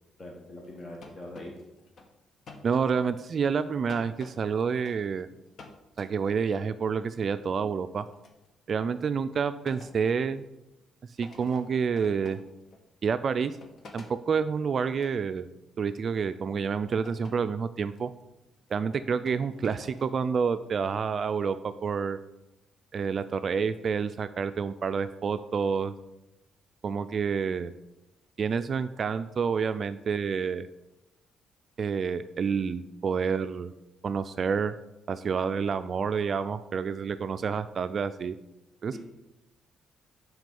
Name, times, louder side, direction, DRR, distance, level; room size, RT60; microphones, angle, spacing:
voice 1, 0.2-1.5 38.9-39.0, left 1 dB, 30° left, -1 dB, 1.2 m, -42 dB
sound 1, 0.6-2.1 2.5-5.2 5.5-6.5 7.2-7.5 8.1-8.5 9.7-10.3 10.7-10.8 11.2-12.9 13.5-14.2 15.0-15.2 16.0-16.2 17.0-17.6 17.9-18.2 18.6-18.7 19.3-20.4, left 3 dB, 55° left, 1.1 m, -51 dB
voice 2, 2.6-5.3 6.0-8.0 8.7-10.4 11.2-12.4 13.0-13.6 13.9-15.5 15.8-18.1 18.7-22.2 22.9-25.9 26.8-27.7 28.4-30.7 31.8-33.7 34.0-34.7 35.1-38.4 38.8-39.0, right 6 dB, 50° right, 12 dB, 0.3 m, -28 dB
6.2 x 4.9 x 5.3 m, 0.93 s
cardioid pair, 90°, 0 cm